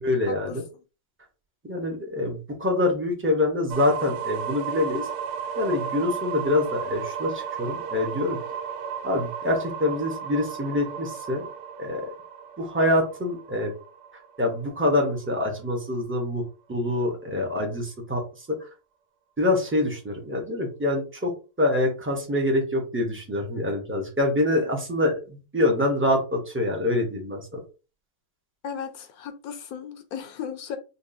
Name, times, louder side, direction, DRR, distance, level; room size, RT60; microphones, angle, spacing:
voice 1, 0.0-0.6 1.6-5.1 5.6-8.4 9.0-11.5 11.8-12.1 12.6-13.7 14.4-16.4 16.7-18.7 19.4-21.3 21.6-27.6, left 2 dB, 20° right, 0 dB, 0.3 m, -25 dB
sound 1, 3.7-15.5, right 7 dB, 75° right, 1.2 m, -34 dB
voice 2, 28.6-30.8, left 7 dB, 70° left, 9 dB, 1.0 m, -36 dB
5.3 x 2.3 x 2.6 m, 0.32 s
omnidirectional pair, 1.9 m